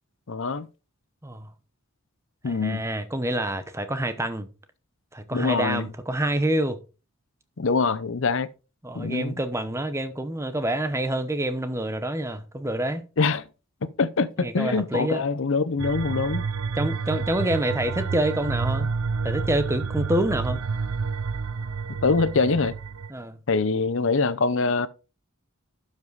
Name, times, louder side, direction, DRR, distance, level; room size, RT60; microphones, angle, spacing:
voice 1, 0.3-0.7 2.4-2.8 5.3-5.9 7.6-8.5 8.9-9.3 13.2-13.4 14.0-16.4 22.0-22.7 23.5-24.9, left 4 dB, 60° left, 0.6 m, -24 dB
voice 2, 2.4-4.5 5.1-6.8 8.8-13.0 14.4-15.2 16.8-18.9 19.2-20.6 23.1-23.4, right 1 dB, 10° right, 0.8 m, -27 dB
sound 1, 15.8-23.1, right 5 dB, 75° right, 0.5 m, -29 dB
12.0 x 5.4 x 4.0 m
head